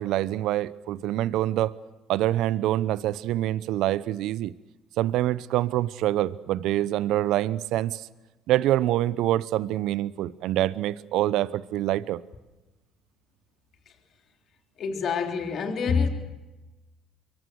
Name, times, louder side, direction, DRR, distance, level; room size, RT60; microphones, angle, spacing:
voice 1, 0.0-1.7 2.1-4.5 5.0-8.1 8.5-12.2, right 14 dB, 70° right, 0.7 m, -25 dB
voice 2, 14.8-16.1, left 5 dB, 55° left, 3.6 m, -26 dB
26.5 x 24.0 x 6.4 m
hypercardioid pair, 60°, 0 cm